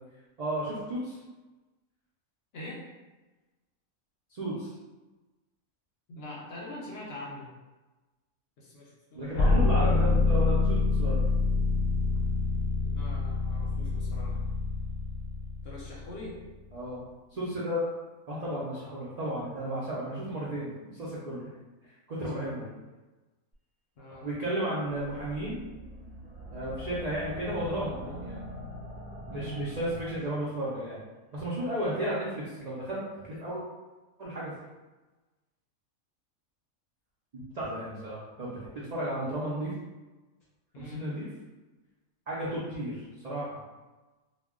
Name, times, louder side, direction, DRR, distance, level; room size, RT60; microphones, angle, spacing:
voice 1, 0.4-1.2 4.3-4.7 9.2-11.3 16.7-17.0 17.3-17.9 18.3-21.5 21.8-22.7 24.2-25.6 26.5-28.5 29.3-31.0 31.3-33.6 34.2-34.5 37.3-39.7 40.8-41.3 42.3-43.5, right 1 dB, 80° right, -7 dB, 0.3 m, -33 dB
voice 2, 6.1-7.5 8.6-9.4 12.8-14.4 15.6-16.4 22.1-22.8 24.0-24.3 29.3-29.6 40.7-41.0, left 1 dB, 60° left, -4 dB, 0.7 m, -43 dB
sound 1, 9.4-16.3, left 3 dB, 90° left, 1.1 m, -26 dB
sound 2, 25.2-30.6, equal, 10° right, 0.5 m, -43 dB
2.2 x 2.1 x 3.5 m, 1.2 s
omnidirectional pair, 1.4 m